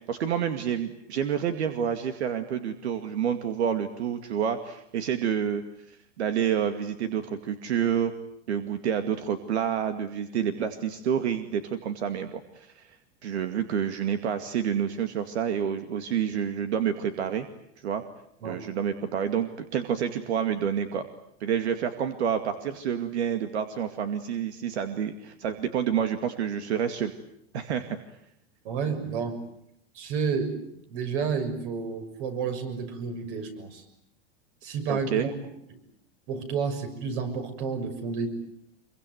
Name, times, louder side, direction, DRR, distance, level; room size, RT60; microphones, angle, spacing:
voice 1, 0.1-5.6 5.9-8.1 8.5-12.9 13.2-17.5 17.8-18.0 18.4-21.0 21.4-27.1 27.5-28.0 34.9-35.3, right 8 dB, 85° right, 8 dB, 2.3 m, -28 dB
voice 2, 28.6-29.4 29.9-33.8 34.6-35.8 36.3-38.3, right 5 dB, 55° right, 8 dB, 6.5 m, -31 dB
27.0 x 23.5 x 9.3 m, 0.75 s
supercardioid pair, 150°, 32 cm